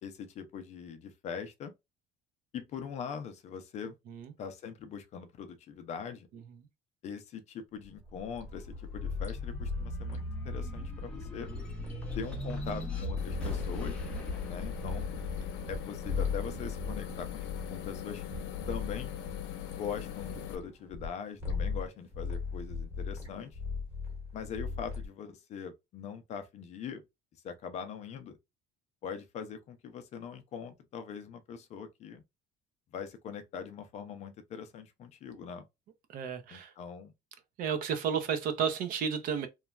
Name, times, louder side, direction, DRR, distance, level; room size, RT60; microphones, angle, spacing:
voice 1, 0.0-1.7 2.5-4.0 4.4-6.3 7.0-11.5 12.2-14.0 14.4-15.1 15.7-18.2 18.7-19.1 19.7-23.6 24.3-27.0 27.4-28.4 29.0-32.2 32.9-35.6 36.5-37.1, left 7 dB, 40° left, 0.4 m, -42 dB
sound 1, 7.8-18.6 19.1-20.3, left 1 dB, 5° left, 0.7 m, -40 dB
sound 2, 8.3-15.8 16.0-21.1 21.4-21.9 22.1-25.1, left 5 dB, 10° right, 1.2 m, -38 dB
sound 3, 13.2-20.6, left 11 dB, 85° left, 0.6 m, -41 dB
voice 2, 36.1-36.7 37.6-39.5, right 7 dB, 50° right, 0.6 m, -32 dB
3.1 x 2.2 x 2.3 m
cardioid pair, 180°, 18 cm